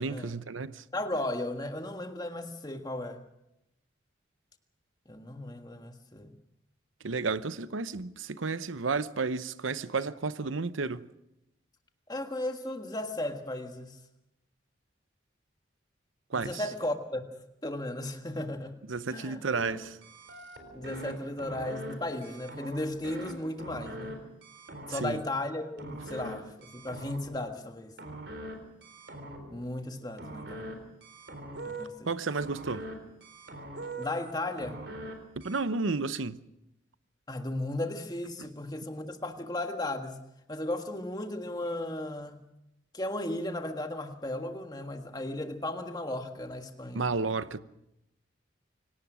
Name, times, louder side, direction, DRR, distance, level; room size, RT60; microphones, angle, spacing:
voice 1, 0.0-0.8 7.0-11.0 16.3-16.6 18.9-20.0 24.9-25.2 32.1-32.8 35.4-36.4 38.4-38.5 46.9-47.6, right 4 dB, 90° right, 0.8 m, -32 dB
voice 2, 0.9-3.2 5.1-6.3 12.1-14.0 16.3-17.2 17.6-18.7 19.1-19.4 20.7-24.2 24.9-27.9 29.5-30.9 31.6-31.9 34.0-34.8 37.3-40.2 40.5-42.4 42.9-47.1, left 1 dB, 20° left, 1.6 m, -35 dB
sound 1, 19.5-19.7 20.0-21.1 21.4-21.9 22.2-23.3 23.6-24.1 24.4-25.2 25.8-26.3 26.6-27.4 28.0-28.5 28.8-29.6 30.2-30.7 31.0-31.8 32.4-32.9 33.2-34.3 34.6-35.1 35.4-35.6, right 1 dB, 60° right, 4.0 m, -42 dB
25.0 x 18.0 x 6.3 m
head